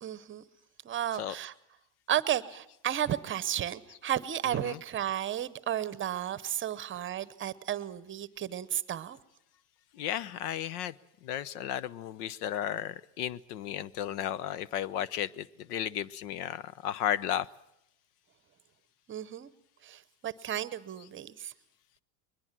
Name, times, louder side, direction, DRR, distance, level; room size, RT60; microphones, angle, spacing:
voice 1, 0.0-0.4 0.8-1.5 2.1-9.2 19.1-19.5 19.8-21.5, right 11 dB, 25° right, 17 dB, 0.9 m, -33 dB
voice 2, 4.4-4.8 9.9-11.0 11.2-17.5 21.0-21.1, left 10 dB, 80° left, 21 dB, 0.9 m, -34 dB
21.5 x 21.0 x 7.5 m, 0.79 s
supercardioid pair, 130°, 46 cm